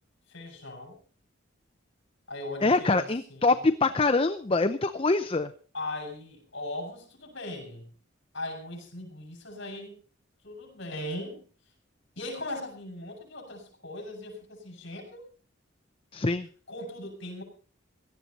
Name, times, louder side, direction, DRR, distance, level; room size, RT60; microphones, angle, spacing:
voice 1, 0.3-1.0 2.3-3.7 5.7-7.9 8.3-10.0 10.4-11.4 12.2-15.2 16.7-17.4, left 1 dB, 60° left, 1 dB, 6.3 m, -39 dB
voice 2, 2.6-5.5 16.1-16.5, left 3 dB, 30° left, 9 dB, 0.6 m, -24 dB
17.5 x 13.0 x 4.1 m, 0.40 s
head